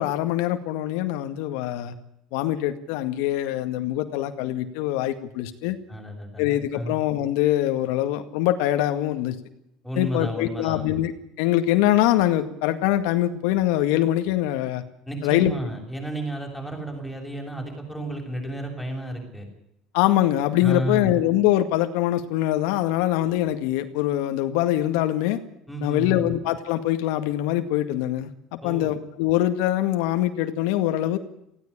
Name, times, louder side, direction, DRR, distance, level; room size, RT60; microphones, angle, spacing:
voice 1, 0.0-1.9 2.3-5.8 6.4-9.4 10.0-11.1 11.4-14.8 15.2-15.5 19.9-25.4 25.8-31.2, left 13 dB, 85° left, 7 dB, 2.0 m, -23 dB
voice 2, 5.9-6.9 9.8-10.9 15.1-19.5 20.6-21.2 25.7-26.4 28.6-28.9, right 1 dB, ahead, 1 dB, 7.2 m, -32 dB
19.0 x 16.5 x 10.0 m, 0.78 s
cardioid pair, 155°, 0 cm